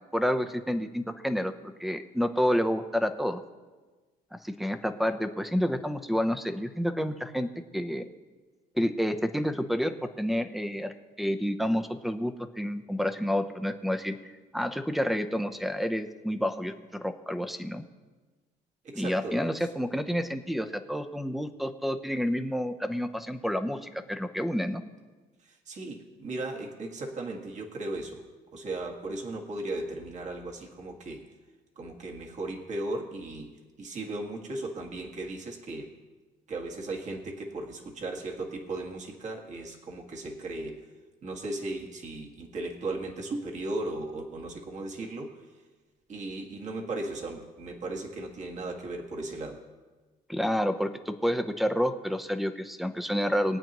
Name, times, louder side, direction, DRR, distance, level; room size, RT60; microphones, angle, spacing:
voice 1, 0.1-1.5 1.8-3.4 4.4-8.1 8.7-14.2 14.5-16.7 17.0-17.8 18.9-24.8 50.3-53.6, equal, ahead, 9 dB, 0.8 m, -29 dB
voice 2, 18.8-19.4 25.5-28.2 28.5-31.2 31.8-33.5 33.8-35.9 36.5-40.8 41.2-45.3 46.1-49.6, right 2 dB, 45° right, 1 dB, 1.9 m, -36 dB
22.0 x 8.7 x 3.1 m, 1.3 s
cardioid pair, 110°, 17 cm